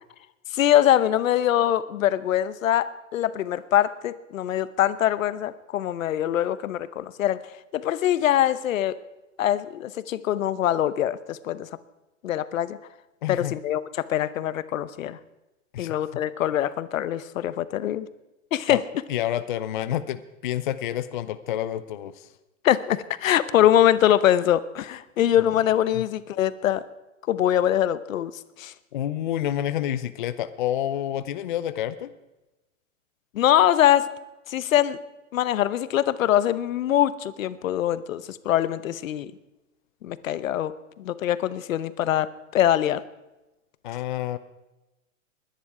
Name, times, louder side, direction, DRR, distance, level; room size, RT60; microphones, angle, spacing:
voice 1, 0.5-7.4 7.7-9.0 9.4-11.7 12.2-12.8 13.3-15.2 15.8-18.1 18.5-18.8 22.6-26.8 27.3-28.3 28.6-28.7 33.3-34.1 34.5-35.0 35.3-39.3 40.0-40.7 41.0-43.0, left 11 dB, 85° left, 15 dB, 0.9 m, -23 dB
voice 2, 13.2-13.5 15.7-15.9 18.7-18.8 19.1-22.3 25.4-25.5 25.9-26.0 28.9-32.1 43.8-44.4, left 11 dB, 40° left, 12 dB, 0.5 m, -29 dB
20.5 x 10.5 x 4.9 m, 1.0 s
supercardioid pair, 175°, 39 cm